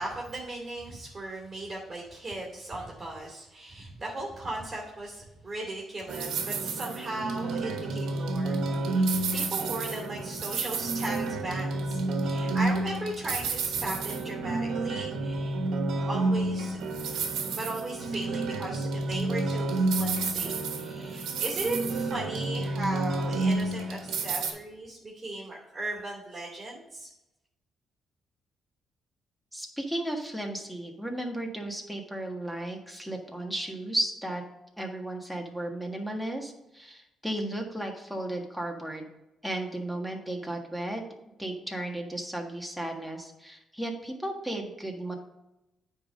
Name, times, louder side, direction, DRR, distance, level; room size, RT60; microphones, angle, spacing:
voice 1, 0.0-15.7 16.0-27.1, right 2 dB, 20° right, -3 dB, 2.6 m, -37 dB
sound 1, 6.1-24.5, right 3 dB, 80° right, 1.2 m, -30 dB
voice 2, 29.5-34.4 34.8-39.1 39.4-41.0 41.4-45.1, right 1 dB, ahead, 1 dB, 1.5 m, -34 dB
9.3 x 3.8 x 5.2 m, 0.92 s
cardioid pair, 90°, 0 cm